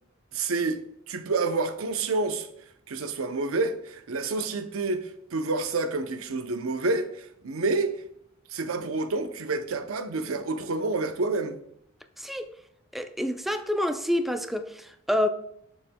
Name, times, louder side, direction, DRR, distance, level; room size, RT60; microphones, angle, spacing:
voice 1, 0.3-0.8 1.1-2.5 2.9-8.0 8.5-11.6, right 3 dB, 90° right, 0.6 m, -28 dB
voice 2, 12.9-15.3, left 1 dB, ahead, 0.3 m, -28 dB
7.0 x 7.0 x 2.2 m
head